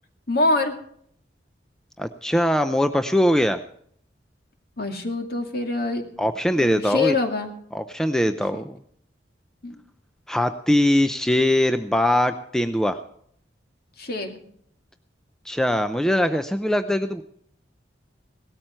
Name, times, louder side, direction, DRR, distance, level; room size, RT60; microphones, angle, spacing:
voice 1, 0.3-0.8 4.8-6.1 6.6-7.5 8.5-8.6 9.6-9.8 14.0-14.4, left 3 dB, 55° left, 4 dB, 2.3 m, -25 dB
voice 2, 2.0-3.6 6.2-7.2 7.7-8.8 10.3-13.0 15.4-17.2, left 1 dB, 5° left, 9 dB, 0.5 m, -21 dB
18.0 x 13.5 x 4.4 m, 0.65 s
head